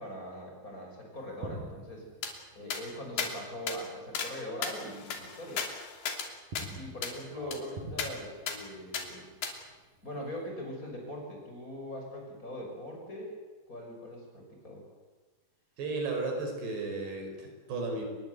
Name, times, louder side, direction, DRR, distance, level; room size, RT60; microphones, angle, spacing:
voice 1, 0.0-2.1 2.5-5.6 6.7-9.3 10.0-13.4 13.7-14.8, equal, 20° left, 0 dB, 6.4 m, -41 dB
sound 1, 1.2-4.2 4.4-4.7 5.2-6.0 6.3-10.5, right 1 dB, 50° right, 6.6 m, -47 dB
sound 2, 2.2-2.3 2.7-2.8 3.2-3.3 3.7-3.8 4.2-4.3 4.6-6.3 6.6-6.7 7.0-7.2 7.5-7.6 8.0-8.1 8.5-8.6 8.9-9.1 9.4-9.5, left 6 dB, 65° left, 4.8 m, -35 dB
voice 2, 15.8-18.0, right 3 dB, 65° right, 3 dB, 6.9 m, -34 dB
27.0 x 21.5 x 8.2 m, 1.3 s
omnidirectional pair, 5.1 m